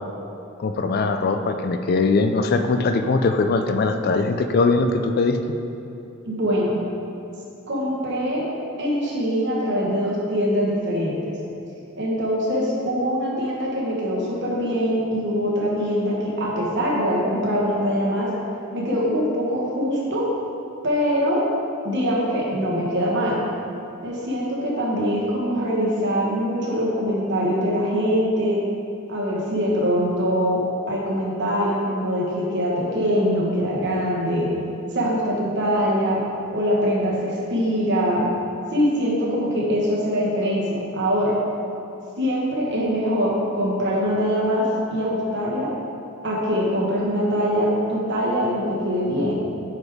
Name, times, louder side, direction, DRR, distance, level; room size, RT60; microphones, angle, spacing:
voice 1, 0.6-5.4, left 3 dB, 45° left, 7 dB, 0.3 m, -21 dB
voice 2, 6.2-6.8 7.7-8.4 8.8-11.3 12.0-18.3 18.7-20.3 20.8-21.4 21.8-23.4 24.0-28.6 29.1-34.5 34.9-36.2 36.5-38.3 38.7-41.4 42.2-45.7 46.2-49.4, equal, 55° right, -4 dB, 1.4 m, -23 dB
7.9 x 5.1 x 3.6 m, 2.8 s
head